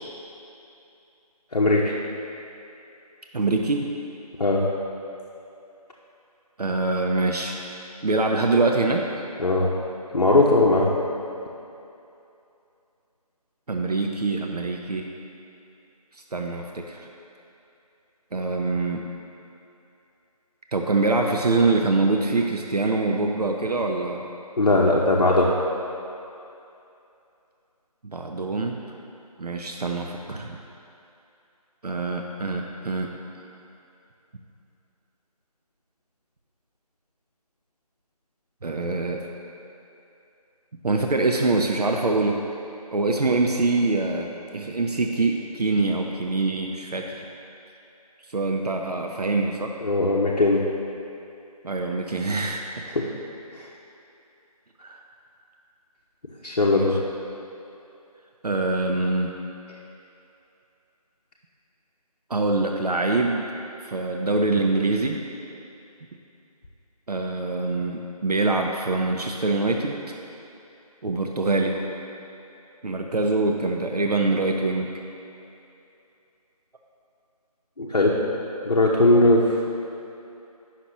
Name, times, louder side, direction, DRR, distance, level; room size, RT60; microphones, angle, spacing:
voice 1, 1.5-1.9 4.4-4.6 9.4-9.7 10.1-10.9 24.6-25.5 49.8-50.6 52.9-53.0 53.6-53.7 56.4-57.0 77.8-78.2 78.6-79.7, left 2 dB, 60° left, -4 dB, 0.8 m, -19 dB
voice 2, 3.3-3.9 6.6-7.6 8.0-9.1 13.7-15.1 16.3-17.1 18.3-19.0 20.7-24.2 28.0-28.8 29.4-30.6 31.8-33.1 38.6-39.2 40.8-42.4 42.9-47.3 48.3-49.7 51.6-52.8 54.8-55.0 56.7-57.0 58.4-59.3 62.3-63.5 63.8-65.2 67.1-70.0 71.0-71.8 72.8-74.9 77.8-77.9, right 3 dB, 75° right, 2 dB, 0.6 m, -24 dB
9.5 x 5.9 x 3.0 m, 2.7 s
figure-of-eight pair, 165°, 20 cm